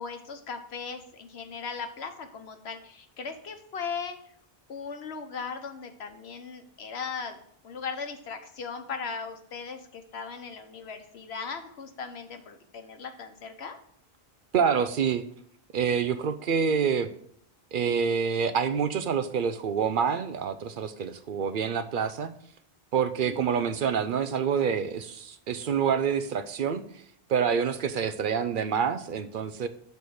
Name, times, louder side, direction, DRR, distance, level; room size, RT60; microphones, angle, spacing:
voice 1, 0.0-4.2 4.7-7.4 7.6-13.8 23.2-23.7, left 5 dB, 80° left, 7 dB, 1.1 m, -38 dB
voice 2, 14.5-15.2 15.7-17.1 17.7-22.3 22.9-26.8 27.3-29.7, right 7 dB, 60° right, 11 dB, 0.7 m, -27 dB
6.9 x 4.2 x 6.3 m, 0.66 s
omnidirectional pair, 1.0 m